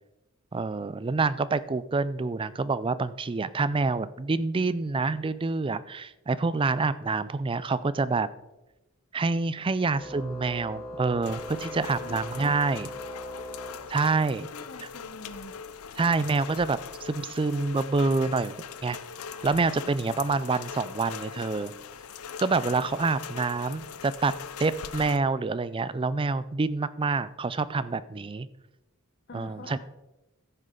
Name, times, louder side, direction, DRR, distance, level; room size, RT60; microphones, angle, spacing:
voice 1, 0.5-8.3 9.1-12.9 13.9-14.5 16.0-18.5 18.8-19.0 19.4-21.7 22.4-24.3 24.6-28.5 29.3-29.8, right 3 dB, 25° right, 16 dB, 0.4 m, -27 dB
Organ, 9.9-14.4, left 1 dB, 15° left, 2.2 m, -40 dB
Rain, 11.2-25.2, left 6 dB, 80° left, 0.6 m, -41 dB
voice 2, 14.5-15.5 29.3-29.8, left 2 dB, 50° left, 1 dB, 0.9 m, -44 dB
14.5 x 6.6 x 3.8 m, 1.0 s
head